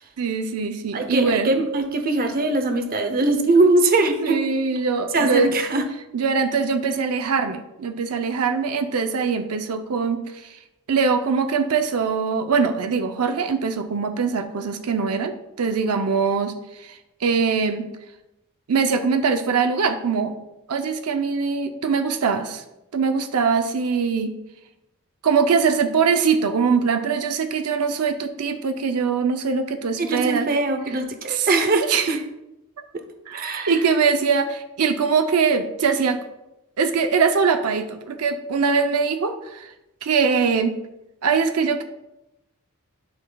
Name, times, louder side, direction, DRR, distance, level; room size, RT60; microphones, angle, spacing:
voice 1, 0.2-1.5 4.2-5.5 6.1-10.6 10.9-17.9 18.7-20.4 20.7-22.6 22.9-24.3 25.2-30.5 31.3-32.2 33.3-36.2 36.8-39.7 40.0-40.7 41.2-41.8, right 5 dB, 85° right, 7 dB, 0.6 m, -22 dB
voice 2, 0.9-4.4 5.1-5.8 30.0-32.2 33.3-33.7, right 2 dB, 40° right, 6 dB, 0.8 m, -21 dB
11.5 x 5.6 x 2.3 m, 0.92 s
head